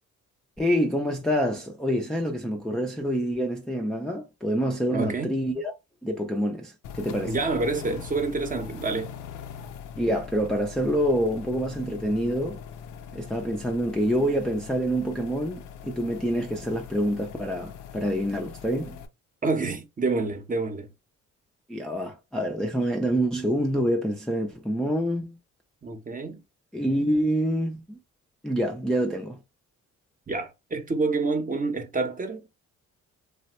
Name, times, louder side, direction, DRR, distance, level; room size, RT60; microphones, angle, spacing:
voice 1, 0.6-5.7 6.0-7.4 10.0-12.6 13.1-19.0 21.7-25.4 26.7-28.0 28.4-29.4, equal, ahead, 0.4 m, -27 dB
voice 2, 4.9-5.3 7.3-9.1 19.4-20.9 25.8-26.4 30.3-32.5, right 3 dB, 25° right, 0.7 m, -28 dB
sound 1, 6.8-19.1, left 8 dB, 85° left, 0.5 m, -42 dB
3.2 x 2.1 x 2.9 m
cardioid pair, 90°, 30 cm